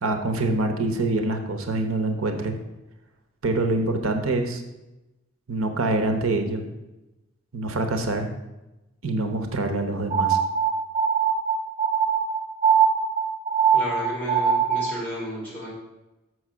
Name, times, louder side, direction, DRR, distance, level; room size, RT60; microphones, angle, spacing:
voice 1, 0.0-2.6 3.4-4.6 5.5-6.7 7.5-8.3 9.0-10.4, right 2 dB, 80° right, 6 dB, 0.9 m, -25 dB
sound 1, 10.1-15.0, right 7 dB, 25° right, 0.8 m, -22 dB
voice 2, 13.7-15.7, equal, 10° left, -6 dB, 3.4 m, -32 dB
6.4 x 6.3 x 6.1 m, 1.0 s
head